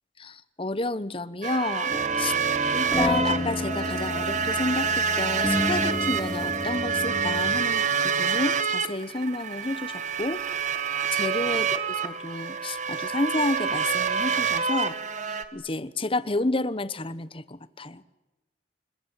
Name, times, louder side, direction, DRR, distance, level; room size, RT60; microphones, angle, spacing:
voice 1, 0.2-2.3 2.7-10.4 11.1-15.0 15.5-18.0, left 2 dB, 30° left, 15 dB, 1.1 m, -30 dB
sound 1, 1.4-15.4, right 6 dB, 40° right, 1.7 m, -27 dB
sound 2, 1.9-7.5, left 1 dB, 5° left, 3.3 m, -31 dB
29.5 x 21.0 x 9.1 m, 1.1 s
head